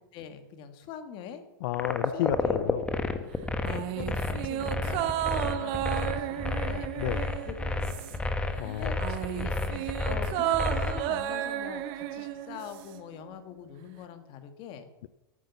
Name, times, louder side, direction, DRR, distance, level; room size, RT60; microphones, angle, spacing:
voice 1, 0.1-1.4 2.1-2.8 3.6-6.9 7.4-14.8, left 8 dB, 45° left, 8 dB, 1.5 m, -44 dB
voice 2, 1.6-2.9 7.0-7.3 8.6-8.9, left 14 dB, 65° left, 16 dB, 0.4 m, -31 dB
sound 1, 1.7-11.0, left 2 dB, 10° left, 1.0 m, -30 dB
sound 2, 3.6-8.4 8.7-13.0 13.3-13.4, right 12 dB, 45° right, 0.8 m, -33 dB
9.3 x 7.9 x 6.9 m, 1.0 s
hypercardioid pair, 125°, 12 cm